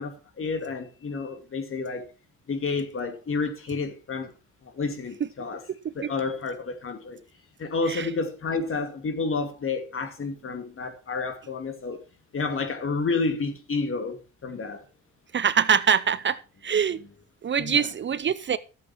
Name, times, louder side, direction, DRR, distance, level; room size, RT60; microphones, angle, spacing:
voice 1, 0.0-2.1 2.5-4.3 4.6-5.6 5.9-7.2 7.6-12.0 12.3-14.8 16.9-17.0 17.6-17.9, left 4 dB, 45° left, 2.5 m, -30 dB
voice 2, 15.3-16.4 16.6-17.0 17.4-18.6, right 7 dB, 40° right, 0.6 m, -23 dB
13.0 x 7.6 x 4.5 m
cardioid pair, 90°, 30 cm